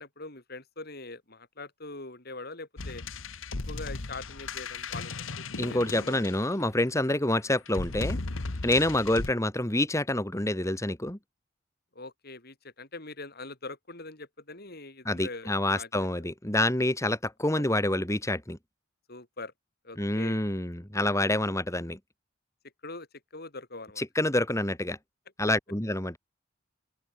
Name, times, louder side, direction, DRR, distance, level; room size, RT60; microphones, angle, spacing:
voice 1, 0.0-3.0 3.7-6.2 11.9-16.1 17.5-17.6 19.1-19.5 19.8-20.5 22.8-23.1 23.3-24.0, left 3 dB, 50° left, 4.7 m, -43 dB
sound 1, 2.8-6.8 7.7-9.3, left 3 dB, 85° left, 1.3 m, -36 dB
voice 2, 5.6-8.2 8.6-11.2 15.1-18.6 20.0-22.0 24.0-25.0 25.4-26.2, left 1 dB, 15° left, 2.3 m, -27 dB
open air
head